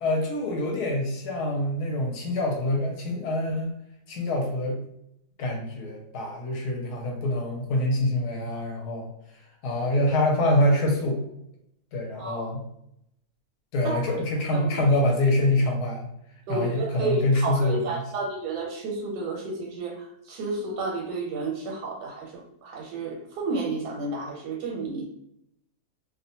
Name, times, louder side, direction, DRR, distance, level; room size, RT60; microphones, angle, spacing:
voice 1, 0.0-3.7 4.1-4.8 5.4-9.1 9.6-11.2 11.9-12.6 13.7-16.1 16.5-18.0, left 1 dB, 75° left, 1 dB, 1.1 m, -25 dB
voice 2, 16.5-22.3 22.6-25.0, right 3 dB, 85° right, -2 dB, 1.2 m, -31 dB
2.7 x 2.1 x 2.7 m, 0.76 s
omnidirectional pair, 1.8 m